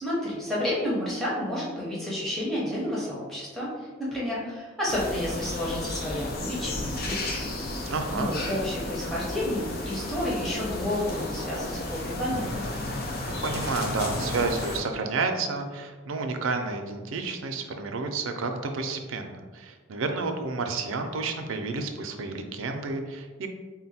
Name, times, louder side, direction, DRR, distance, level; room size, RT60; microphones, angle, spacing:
voice 1, 0.0-7.2 8.1-12.6, left 1 dB, ahead, -7 dB, 0.8 m, -30 dB
sound 1, 4.9-14.8, left 2 dB, 50° left, 0.6 m, -33 dB
voice 2, 7.9-8.3 13.3-23.5, right 3 dB, 90° right, 5 dB, 0.5 m, -30 dB
3.9 x 2.2 x 4.1 m, 1.4 s
head